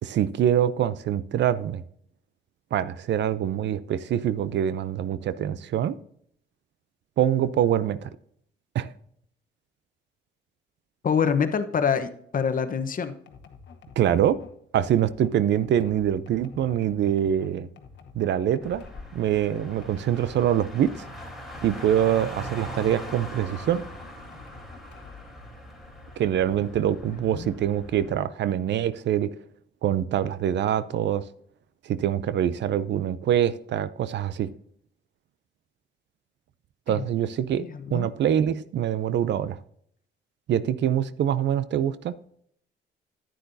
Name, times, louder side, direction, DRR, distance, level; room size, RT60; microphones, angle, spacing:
voice 1, 0.0-1.8 2.7-6.0 7.2-8.1 8.7-8.9 14.0-14.4 14.7-17.7 18.1-18.8 19.1-21.1 21.6-23.8 26.2-29.3 29.8-31.2 31.8-34.5 36.9-37.6 37.9-39.6 40.5-42.1, right 10 dB, 65° right, 16 dB, 0.5 m, -24 dB
voice 2, 11.0-13.1 27.0-27.5 36.9-37.1 37.6-38.1, left 6 dB, 45° left, 10 dB, 1.0 m, -26 dB
sound 1, 13.3-23.2 23.6-25.3, left 6 dB, 65° left, 1.1 m, -49 dB
Car, 18.6-28.1, equal, ahead, 3.6 m, -41 dB
10.0 x 9.3 x 2.7 m, 0.67 s
cardioid pair, 90°, 20 cm